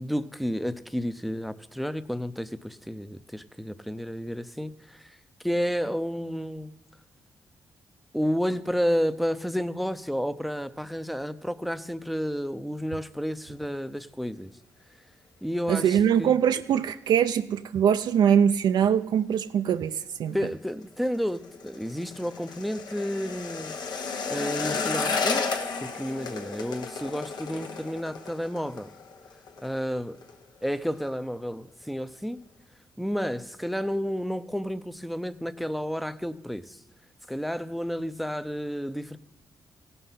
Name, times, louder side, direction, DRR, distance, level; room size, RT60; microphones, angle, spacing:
voice 1, 0.0-5.2 5.4-6.7 8.1-14.5 15.4-16.3 20.3-23.8 24.3-25.4 25.8-28.9 29.6-30.2 30.6-32.4 33.0-36.8 37.3-39.2, equal, ahead, 13 dB, 0.5 m, -31 dB
voice 2, 15.7-20.4, right 8 dB, 75° right, 9 dB, 0.4 m, -23 dB
sound 1, 20.7-29.7 30.0-30.3 30.6-31.1 31.5-31.6, left 4 dB, 70° left, 1.0 m, -33 dB
16.5 x 5.5 x 5.7 m, 0.97 s
cardioid pair, 70°, 7 cm